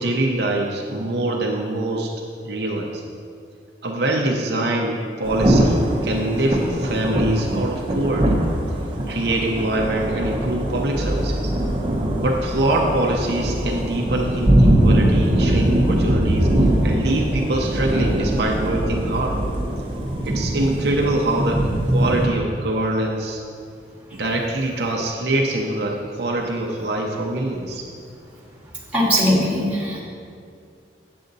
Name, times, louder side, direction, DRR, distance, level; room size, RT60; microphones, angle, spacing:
voice 1, 0.0-2.1 2.4-3.0 3.8-8.4 9.1-11.5 12.2-19.4 20.2-23.4 24.1-27.9, right 1 dB, 60° right, 0 dB, 0.7 m, -24 dB
Thunder / Rain, 5.2-22.3, right 1 dB, 30° right, 0.9 m, -21 dB
voice 2, 28.9-30.0, equal, 10° right, -5 dB, 1.8 m, -19 dB
8.2 x 7.7 x 4.0 m, 2.3 s
head